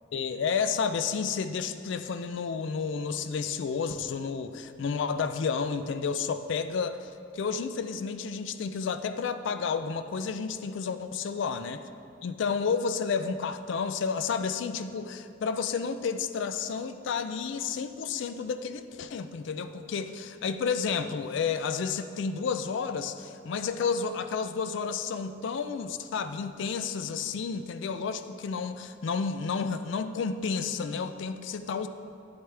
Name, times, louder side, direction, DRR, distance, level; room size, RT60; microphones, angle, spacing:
voice 1, 0.1-11.8 12.2-31.9, left 5 dB, 65° left, 10 dB, 0.4 m, -31 dB
9.3 x 7.9 x 3.3 m, 2.5 s
head